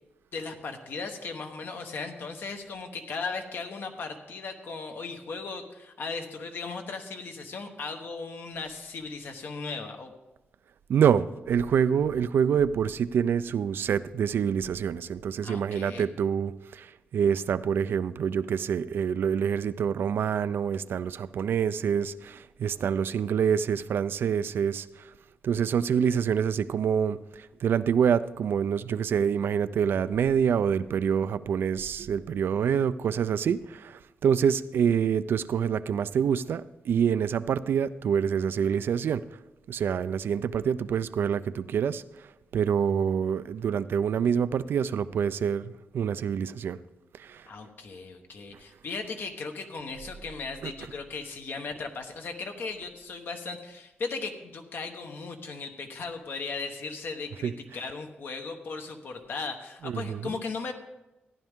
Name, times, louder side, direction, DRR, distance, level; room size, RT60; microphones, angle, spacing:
voice 1, 0.3-10.1 15.4-16.1 47.5-60.7, left 4 dB, 70° left, 5 dB, 1.2 m, -37 dB
voice 2, 10.9-25.1 25.4-39.2 39.7-42.0 42.5-46.8 47.1-47.5 50.6-50.7 57.4-57.9 59.8-60.4, right 7 dB, 80° right, 14 dB, 0.4 m, -26 dB
14.5 x 10.5 x 3.6 m, 1.0 s
wide cardioid pair, 125°, 4 cm